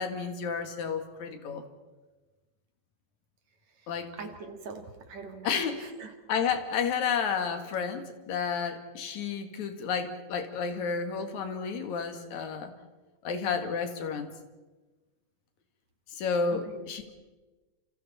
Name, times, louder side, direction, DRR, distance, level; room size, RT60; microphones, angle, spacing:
voice 1, 0.0-1.7 3.9-4.1 5.4-5.9 6.3-12.7 13.2-14.3 16.1-17.1, left 6 dB, 55° left, 6 dB, 2.8 m, -31 dB
voice 2, 4.2-6.1 16.5-16.9, right 4 dB, 50° right, 5 dB, 2.7 m, -43 dB
30.0 x 27.5 x 4.3 m, 1.2 s
omnidirectional pair, 4.7 m